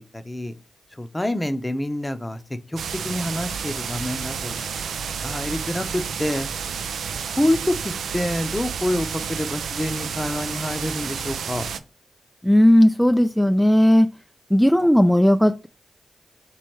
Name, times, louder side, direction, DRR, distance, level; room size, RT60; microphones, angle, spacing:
voice 1, 0.1-0.5 0.9-2.4 2.7-6.5 7.3-11.7, left 1 dB, 20° left, 0.7 m, -27 dB
sound 1, 2.8-11.8, right 6 dB, 85° right, 0.4 m, -30 dB
voice 2, 12.4-14.1 14.5-15.7, equal, ahead, 0.3 m, -16 dB
3.4 x 3.2 x 4.5 m
cardioid pair, 50°, 0 cm